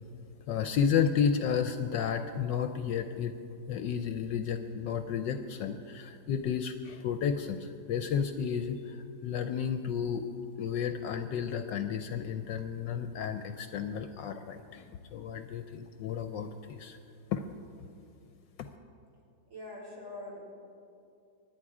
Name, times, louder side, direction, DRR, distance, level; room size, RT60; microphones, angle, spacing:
voice 1, 0.5-3.3 3.7-10.2 10.6-17.0 17.3-17.4 18.6-18.7, left 7 dB, 70° left, 8 dB, 1.2 m, -32 dB
voice 2, 19.5-20.4, left 1 dB, 40° right, -4 dB, 4.3 m, -43 dB
24.0 x 10.0 x 4.8 m, 2.5 s
omnidirectional pair, 2.2 m